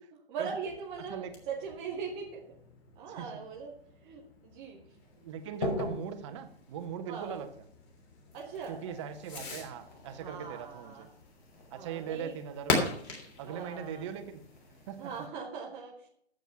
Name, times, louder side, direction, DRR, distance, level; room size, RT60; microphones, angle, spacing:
voice 1, 0.3-2.6 3.0-3.7 4.0-4.8 7.1-7.3 8.3-8.8 10.2-11.1 11.7-12.3 13.5-14.0 15.0-16.1, right 6 dB, 5° right, -4 dB, 0.4 m, -40 dB
Fireworks, 0.6-15.2, left 3 dB, 25° left, 3.2 m, -41 dB
sound 1, 5.0-15.3, left 2 dB, 50° left, 4.2 m, -44 dB
voice 2, 5.2-7.5 8.7-11.1 11.7-12.9 13.4-14.4 14.9-15.1, right 8 dB, 30° right, 8 dB, 1.3 m, -40 dB
14.0 x 8.1 x 5.7 m, 0.68 s
figure-of-eight pair, 130°, 32 cm